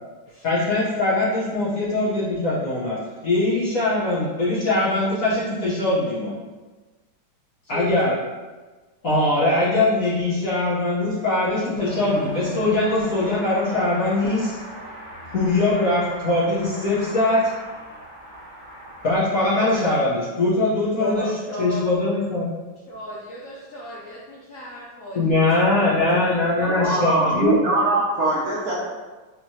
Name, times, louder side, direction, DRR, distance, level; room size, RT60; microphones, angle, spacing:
voice 1, 0.4-3.0 3.2-6.4 7.7-8.1 9.0-14.5 15.3-17.4 19.0-21.3 21.6-22.5 25.1-27.6, left 2 dB, 50° left, -9 dB, 1.3 m, -21 dB
voice 2, 7.6-8.2 21.0-21.8 22.9-27.1, equal, 80° left, -5 dB, 0.7 m, -35 dB
Car passing by / Accelerating revving vroom, 11.7-19.2, equal, 30° left, 1.1 m, -38 dB
voice 3, 26.6-28.7, right 2 dB, 65° right, -7 dB, 1.0 m, -22 dB
4.5 x 3.0 x 2.8 m, 1.3 s
omnidirectional pair, 2.2 m